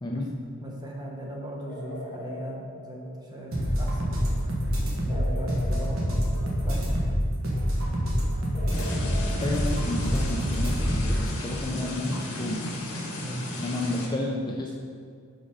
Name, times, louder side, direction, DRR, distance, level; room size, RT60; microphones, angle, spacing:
voice 1, 0.6-4.3 5.0-7.2 13.2-13.4, equal, 20° right, -2 dB, 0.9 m, -38 dB
sound 1, 1.7-3.7 5.1-7.2 8.5-9.3, left 1 dB, 35° left, 0.9 m, -42 dB
sound 2, 3.5-11.3, equal, 65° right, 1.4 m, -26 dB
sound 3, 8.7-14.1, left 1 dB, 80° left, 1.2 m, -34 dB
voice 2, 9.4-12.6 13.6-14.7, left 1 dB, 20° left, -1 dB, 0.4 m, -31 dB
5.2 x 5.2 x 5.0 m, 2.1 s
head